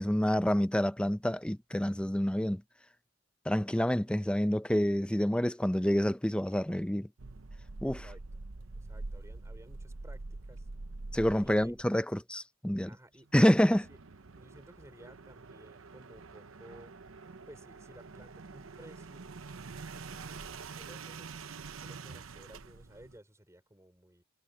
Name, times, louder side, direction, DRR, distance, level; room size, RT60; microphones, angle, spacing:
voice 1, 0.0-2.6 3.5-7.1 7.8-8.0 11.1-12.9 13.3-13.8, equal, 5° left, 0.6 m, -28 dB
sound 1, 7.2-11.8 13.3-23.2, right 3 dB, 80° right, 0.9 m, -46 dB
voice 2, 7.8-8.2 8.7-10.7 11.4-11.8 12.9-14.0 14.4-17.0 17.5-19.3 19.9-21.5 21.7-24.2, right 1 dB, 15° right, 4.3 m, -55 dB
head